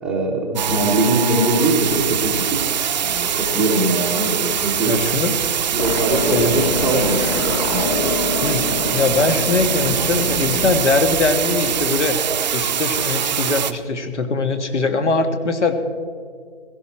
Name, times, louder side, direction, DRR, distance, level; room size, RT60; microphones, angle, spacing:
voice 1, 0.0-2.7 3.0-4.9 5.7-7.9, right 2 dB, ahead, -3 dB, 0.7 m, -22 dB
voice 2, 0.5-0.9 4.8-5.4 6.3-6.6 8.4-8.6 8.9-12.2 12.5-15.7, left 3 dB, 80° left, 7 dB, 1.8 m, -21 dB
sound 1, 0.6-13.7, right 9 dB, 40° right, 0.6 m, -23 dB
sound 2, 5.8-10.8, left 2 dB, 30° left, 1.0 m, -26 dB
16.5 x 15.5 x 4.4 m, 2.1 s
hypercardioid pair, 150°, 35 cm